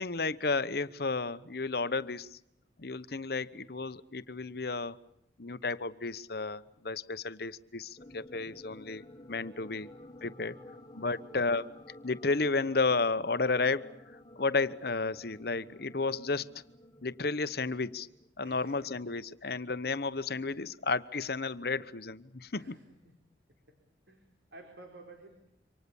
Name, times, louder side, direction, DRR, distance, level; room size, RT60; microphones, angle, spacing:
voice 1, 0.0-2.4 2.8-5.0 5.4-9.0 9.3-9.9 10.2-10.6 11.0-11.7 12.0-13.9 14.4-16.5 17.0-18.1 18.4-22.8, left 3 dB, 55° left, 0.9 m, -32 dB
sound 1, 8.0-18.3, left 1 dB, 20° left, 1.6 m, -53 dB
voice 2, 10.2-11.2 18.4-19.2 20.3-20.7 22.5-23.2 23.7-23.8 24.1-25.3, right 2 dB, 70° right, 4.3 m, -55 dB
27.5 x 25.5 x 7.0 m
head